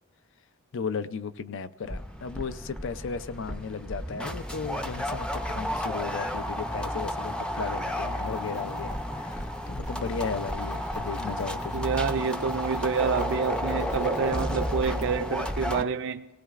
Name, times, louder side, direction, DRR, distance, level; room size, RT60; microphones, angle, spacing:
voice 1, 0.7-11.9, left 5 dB, 65° left, 0.5 m, -35 dB
sound 1, 1.9-15.8, equal, 5° left, 0.5 m, -32 dB
sound 2, 8.2-15.1, equal, 35° left, 1.1 m, -48 dB
voice 2, 11.7-16.3, right 5 dB, 60° right, 0.4 m, -28 dB
26.5 x 18.0 x 2.5 m
head